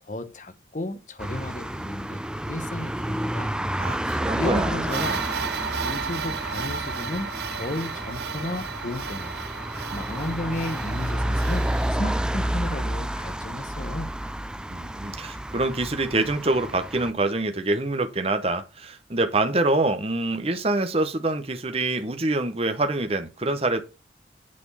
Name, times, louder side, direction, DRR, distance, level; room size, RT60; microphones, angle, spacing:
voice 1, 0.0-2.2 2.5-3.5 4.0-5.2 5.8-9.3 9.9-14.1, left 1 dB, 40° left, 1.0 m, -33 dB
sound 1, 1.2-17.1, right 1 dB, 5° right, 0.3 m, -30 dB
voice 2, 3.8-5.2 14.7-23.8, right 2 dB, 30° right, 0.9 m, -26 dB
sound 2, 4.9-11.9, right 6 dB, 60° right, 0.6 m, -34 dB
8.5 x 4.4 x 5.5 m
head